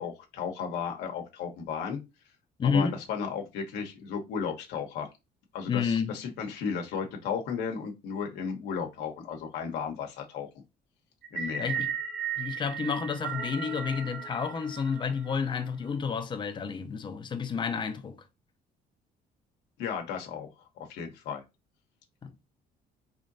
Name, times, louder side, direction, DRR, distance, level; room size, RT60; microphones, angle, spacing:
voice 1, 0.0-2.0 2.6-5.1 5.5-10.5 11.3-11.7 19.8-20.5 20.8-21.4, left 6 dB, 85° left, 0.9 m, -34 dB
voice 2, 2.6-3.0 5.7-6.2 11.6-11.9 12.4-18.2 22.2-22.3, left 6 dB, 30° left, 0.5 m, -30 dB
sound 1, 11.2-15.5, right 7 dB, 80° right, 1.4 m, -36 dB
3.7 x 3.2 x 2.6 m
cardioid pair, 110°, 17 cm